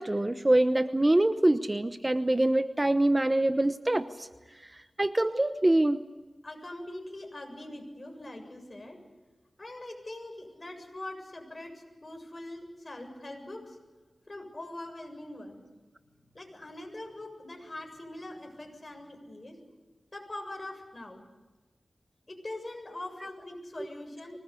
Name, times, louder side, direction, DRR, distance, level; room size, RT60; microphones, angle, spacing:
voice 1, 0.0-4.3 5.0-6.0, right 1 dB, 25° right, 10 dB, 1.0 m, -24 dB
voice 2, 6.4-9.0 9.6-13.8 14.3-15.6 16.2-19.6 20.1-21.2 22.3-24.4, left 1 dB, 35° left, 3 dB, 7.5 m, -42 dB
24.5 x 20.0 x 8.4 m, 1.2 s
cardioid pair, 55°, 0 cm